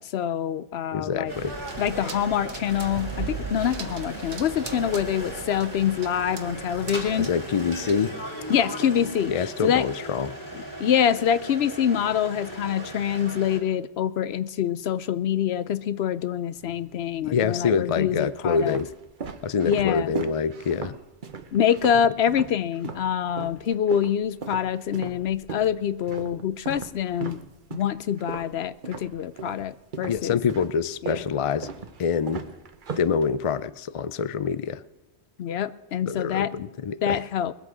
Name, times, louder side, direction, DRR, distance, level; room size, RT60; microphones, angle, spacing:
voice 1, 0.0-1.3 1.8-7.3 8.5-9.3 9.6-9.9 10.5-18.8 19.6-20.1 21.5-27.4 27.7-30.4 31.0-31.2 35.4-36.7 37.0-37.5, left 9 dB, 70° left, 0.8 m, -25 dB
voice 2, 0.9-1.6 7.2-8.2 9.3-10.4 17.2-18.9 19.4-20.9 30.1-31.7 32.0-32.4 33.0-34.8 36.1-36.5 36.8-37.2, left 6 dB, 50° left, 0.4 m, -26 dB
sound 1, 1.3-13.6, right 1 dB, 15° left, 2.7 m, -37 dB
sound 2, 1.3-8.1, right 5 dB, 80° right, 1.5 m, -38 dB
sound 3, 16.6-17.3 18.0-23.1 23.4-29.6 29.9-33.6, right 5 dB, 50° right, 1.0 m, -38 dB
20.5 x 8.0 x 6.1 m
omnidirectional pair, 1.1 m